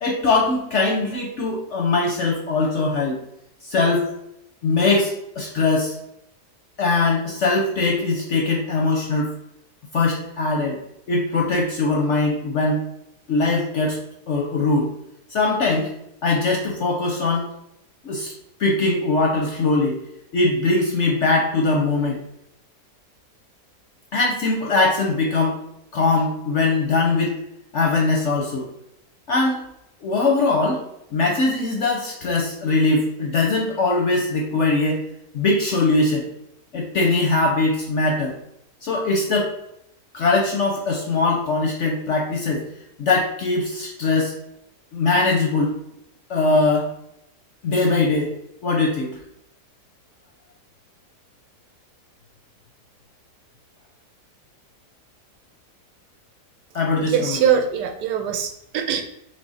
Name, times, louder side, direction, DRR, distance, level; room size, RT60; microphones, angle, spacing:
voice 1, 0.0-3.2 3.6-4.1 4.6-5.9 6.8-9.3 9.9-10.8 11.1-12.8 13.3-14.0 14.3-14.9 15.3-15.9 16.2-17.5 18.0-18.3 18.6-20.0 20.3-22.2 24.1-25.6 25.9-27.3 27.7-28.7 29.3-29.6 30.0-30.8 31.1-35.0 35.3-36.3 36.7-38.3 38.8-39.5 40.1-42.6 43.0-44.3 44.9-45.8 46.3-46.9 47.6-48.3 48.6-49.1 56.7-57.4, left 3 dB, 65° left, 0 dB, 0.7 m, -21 dB
voice 2, 57.1-59.0, right 8 dB, 80° right, 6 dB, 1.1 m, -22 dB
3.4 x 3.2 x 4.0 m, 0.79 s
omnidirectional pair, 1.8 m